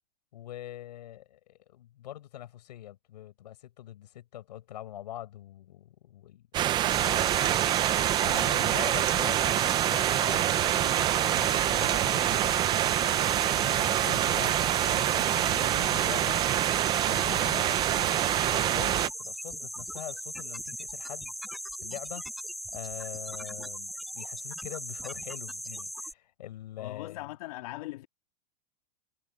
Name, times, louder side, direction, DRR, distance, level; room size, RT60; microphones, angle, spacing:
voice 1, 0.3-7.8 8.2-13.1 13.6-16.4 17.1-18.9 19.2-21.3 21.8-22.2 22.7-27.2, left 12 dB, 85° left, 6.8 m, -44 dB
sound 1, 6.5-19.1, right 12 dB, 20° right, 0.5 m, -26 dB
sound 2, 6.9-26.1, equal, ahead, 4.7 m, -39 dB
voice 2, 26.8-28.1, left 18 dB, 60° left, 3.1 m, -40 dB
supercardioid pair, 155°, 21 cm